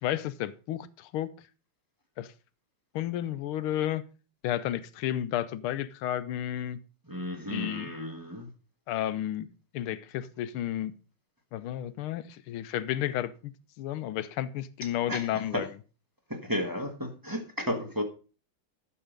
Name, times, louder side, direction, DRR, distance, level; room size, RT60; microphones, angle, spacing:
voice 1, 0.0-1.3 2.2-2.3 2.9-4.0 4.4-6.8 7.5-7.9 8.9-9.5 9.7-10.9 11.5-13.5 13.8-15.7, left 12 dB, 85° left, 1.6 m, -32 dB
voice 2, 7.1-8.5 15.1-15.3 15.5-15.7 16.3-18.0, equal, 15° right, 0.9 m, -33 dB
11.5 x 6.6 x 5.1 m
omnidirectional pair, 2.4 m